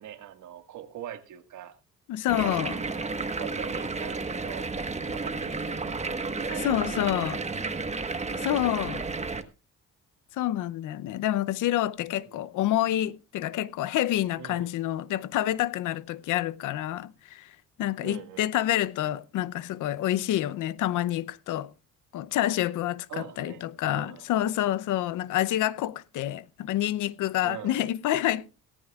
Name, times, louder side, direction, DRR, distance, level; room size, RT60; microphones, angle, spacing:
voice 1, 0.0-1.8 2.5-4.7 5.1-7.8 12.3-12.5 14.4-14.7 18.0-18.5 23.1-24.2 27.4-27.8, right 10 dB, 75° right, 1.9 m, -43 dB
voice 2, 2.1-2.8 6.6-7.4 8.3-9.0 10.3-21.7 22.1-28.5, left 13 dB, 85° left, 0.7 m, -28 dB
sound 1, 2.3-9.4, right 3 dB, 20° right, 1.3 m, -32 dB
18.0 x 15.0 x 2.4 m
cardioid pair, 90°, 30 cm